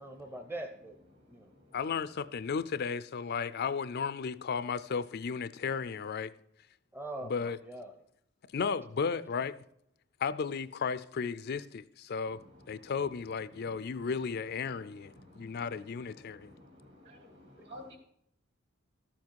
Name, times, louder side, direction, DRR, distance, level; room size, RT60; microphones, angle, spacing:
voice 1, 0.0-1.0 1.3-1.5 6.9-8.0 9.2-9.3 17.6-17.7, right 1 dB, 10° right, 0.7 m, -42 dB
voice 2, 1.2-1.8 12.3-12.9 13.6-14.1 14.6-18.0, left 1 dB, 55° right, 2.6 m, -54 dB
voice 3, 1.7-6.3 7.2-7.6 8.5-9.5 10.2-12.4 12.7-16.5, left 5 dB, 50° left, 0.4 m, -34 dB
13.0 x 7.3 x 4.6 m
head